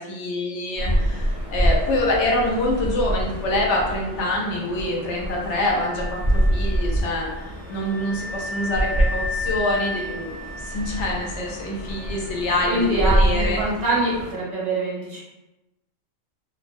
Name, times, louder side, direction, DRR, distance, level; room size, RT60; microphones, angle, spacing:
voice 1, 0.0-13.6, left 1 dB, 65° left, -2 dB, 0.9 m, -26 dB
sound 1, 0.7-14.3, right 1 dB, 35° left, 0.9 m, -26 dB
Wind instrument woodwind instrument, 5.6-13.0, left 2 dB, 5° left, 0.6 m, -35 dB
voice 2, 12.7-15.2, right 2 dB, 45° right, -6 dB, 0.5 m, -24 dB
2.3 x 2.1 x 2.5 m, 0.99 s
omnidirectional pair, 1.4 m